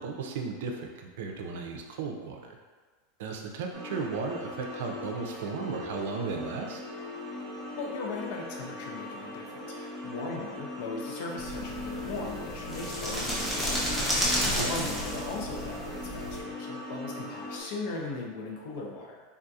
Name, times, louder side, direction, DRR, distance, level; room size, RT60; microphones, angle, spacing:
voice 1, 0.0-2.6 3.2-6.8 14.6-14.9, right 4 dB, 75° right, 2 dB, 0.4 m, -35 dB
sound 1, 3.7-17.6, left 2 dB, 25° right, 0.9 m, -40 dB
voice 2, 7.8-19.2, left 3 dB, 60° left, 0 dB, 0.6 m, -38 dB
sound 2, 11.4-16.4, equal, 5° left, 0.6 m, -32 dB
3.5 x 2.7 x 2.3 m, 1.4 s
supercardioid pair, 155°, 0 cm